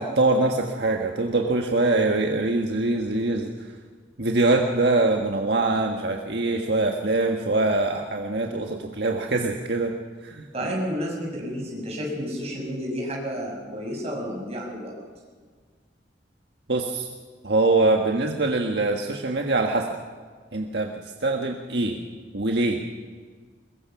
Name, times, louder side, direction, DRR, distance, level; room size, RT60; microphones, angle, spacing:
voice 1, 0.0-3.7 4.2-9.9 10.2-10.5 16.7-17.1 17.4-20.0 20.5-20.9 21.2-22.0 22.3-22.8, right 2 dB, 65° right, 2 dB, 1.5 m, -23 dB
voice 2, 10.5-14.9, equal, 35° right, -1 dB, 6.8 m, -31 dB
23.0 x 21.5 x 6.0 m, 1.5 s
head